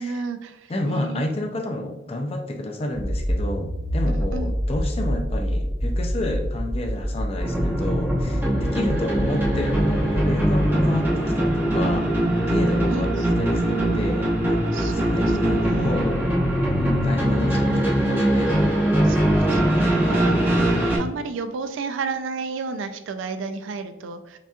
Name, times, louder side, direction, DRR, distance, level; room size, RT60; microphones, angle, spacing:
voice 1, 0.0-0.6 0.9-1.2 4.1-4.5 12.8-13.3 14.7-16.0 18.5-20.7 21.0-24.4, right 4 dB, 75° right, 9 dB, 0.4 m, -33 dB
voice 2, 0.7-12.1 12.5-14.3 14.9-16.2 16.7-18.5, left 1 dB, 30° left, 3 dB, 0.4 m, -30 dB
Accelerating revving vroom, 2.9-10.2, equal, 35° right, 0.8 m, -26 dB
sound 1, 7.4-21.0, right 1 dB, 10° right, 1.0 m, -21 dB
5.7 x 2.9 x 2.3 m, 0.92 s
head